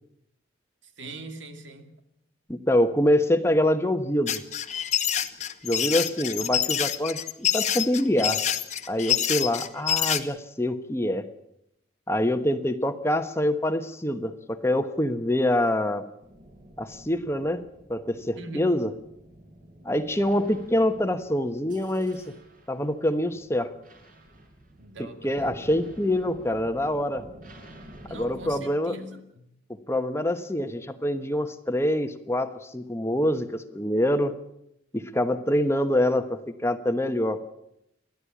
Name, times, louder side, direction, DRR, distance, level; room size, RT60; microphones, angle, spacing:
voice 1, 0.8-1.9 18.4-18.8 24.8-25.7 28.1-29.5, right 2 dB, 80° right, 6 dB, 2.6 m, -41 dB
voice 2, 2.5-4.4 5.6-8.4 8.9-11.2 12.1-16.0 16.8-17.6 17.9-18.9 19.8-22.2 22.7-23.7 25.2-27.2 28.1-28.9 29.9-34.3 34.9-37.4, left 1 dB, 15° left, 8 dB, 1.1 m, -25 dB
sound 1, 4.3-10.2, left 10 dB, 40° left, 1.1 m, -26 dB
sound 2, 16.2-28.6, right 1 dB, 45° right, 5.2 m, -50 dB
29.0 x 12.0 x 8.5 m, 0.80 s
head